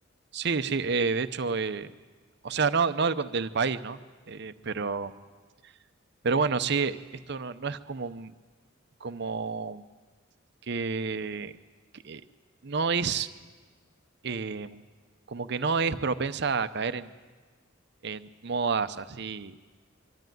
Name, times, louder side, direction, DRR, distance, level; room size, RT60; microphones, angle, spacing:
voice 1, 0.3-1.9 2.4-4.0 4.3-5.1 6.2-7.0 7.3-8.3 9.0-9.8 10.7-11.5 12.0-12.2 12.6-13.3 14.2-14.8 15.3-17.1 18.0-19.6, right 5 dB, 55° right, 12 dB, 0.7 m, -29 dB
23.5 x 13.5 x 9.2 m, 1.4 s
head